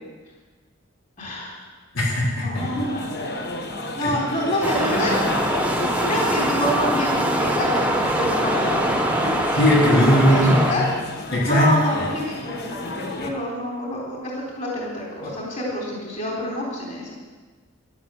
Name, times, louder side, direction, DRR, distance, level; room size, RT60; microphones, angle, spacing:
voice 1, 1.2-1.6 2.4-3.0 3.9-5.1 6.1-9.3 9.9-10.8 11.4-17.1, equal, 35° left, -3 dB, 3.7 m, -27 dB
voice 2, 1.9-2.6 4.0-4.2 9.5-10.5 11.3-11.7 15.2-15.3, equal, 80° left, -3 dB, 4.3 m, -18 dB
sound 1, 2.6-13.3, left 2 dB, 50° left, 1.4 m, -31 dB
sound 2, 4.6-10.7, right 1 dB, 5° right, 1.0 m, -23 dB
12.5 x 11.5 x 7.8 m, 1.4 s
head